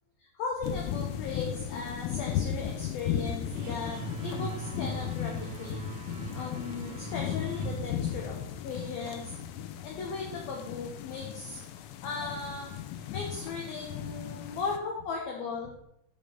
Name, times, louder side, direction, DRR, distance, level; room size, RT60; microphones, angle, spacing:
voice 1, 0.3-5.8 6.3-9.3 9.8-11.6 12.0-12.7 13.1-15.7, left 4 dB, 65° left, -1 dB, 2.7 m, -37 dB
sound 1, 0.6-14.8, left 10 dB, 90° left, 3.2 m, -36 dB
weak electric - weak electric, 3.5-8.9, right 7 dB, 75° right, 2.5 m, -42 dB
12.5 x 5.0 x 5.9 m, 0.76 s
omnidirectional pair, 5.7 m